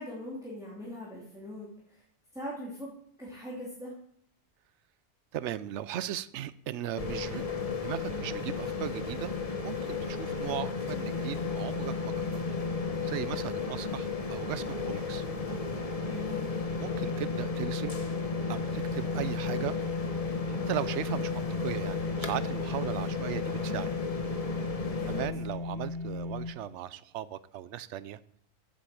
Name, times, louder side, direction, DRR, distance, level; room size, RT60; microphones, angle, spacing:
voice 1, 0.0-2.0 2.3-2.9 3.2-3.9 16.0-16.5 24.9-25.2, left 1 dB, 5° right, -7 dB, 2.7 m, -41 dB
voice 2, 5.3-7.4 7.8-9.3 9.6-12.4 13.0-15.2 16.8-18.0 18.5-19.8 20.5-23.9 25.1-28.2, right 11 dB, 75° right, 16 dB, 0.9 m, -37 dB
sound 1, 7.0-25.3, left 4 dB, 30° left, 1.1 m, -34 dB
sound 2, 11.0-26.5, left 3 dB, 65° left, 3.0 m, -37 dB
8.3 x 7.7 x 7.5 m, 0.67 s
omnidirectional pair, 1.2 m